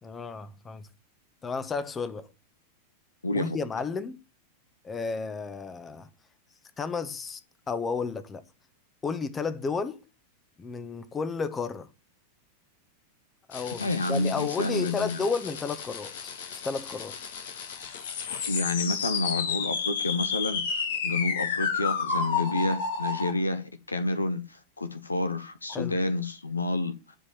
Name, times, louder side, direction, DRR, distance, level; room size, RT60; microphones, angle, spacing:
voice 1, 0.0-0.9 1.4-2.3 3.3-4.2 4.8-6.1 6.8-7.4 7.7-8.4 9.0-10.0 10.6-11.9 13.5-16.3 16.6-17.1 25.7-26.0, left 4 dB, 20° left, 1.3 m, -32 dB
voice 2, 3.2-3.6 13.8-15.2 18.5-26.9, left 2 dB, 80° left, 1.2 m, -29 dB
sound 1, 13.5-23.3, left 6 dB, 60° left, 2.0 m, -32 dB
11.0 x 4.8 x 7.6 m
figure-of-eight pair, 90°, 0 cm